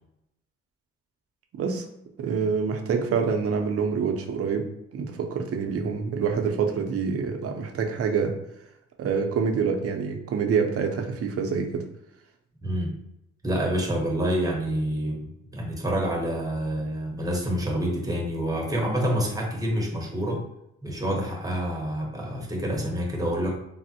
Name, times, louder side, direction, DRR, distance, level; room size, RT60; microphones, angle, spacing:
voice 1, 1.5-1.9 2.2-8.4 9.0-11.8, right 5 dB, 50° right, 3 dB, 0.5 m, -26 dB
voice 2, 12.6-13.0 13.4-20.4 20.8-23.6, equal, 10° right, -1 dB, 0.8 m, -27 dB
3.4 x 2.0 x 2.7 m, 0.84 s
cardioid pair, 90°, 30 cm